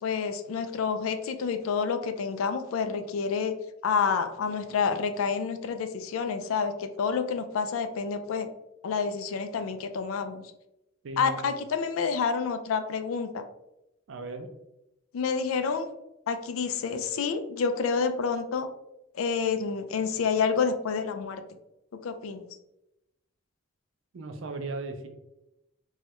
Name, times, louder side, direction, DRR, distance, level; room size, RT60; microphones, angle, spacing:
voice 1, 0.0-3.5 3.8-8.5 8.8-10.4 11.2-13.4 15.1-15.9 16.3-18.7 19.1-21.4 22.0-22.5, left 5 dB, 85° left, 8 dB, 0.4 m, -28 dB
voice 2, 11.0-11.5 14.1-14.5 24.1-25.1, right 2 dB, 70° right, 6 dB, 0.4 m, -36 dB
3.1 x 2.3 x 2.8 m, 0.89 s
head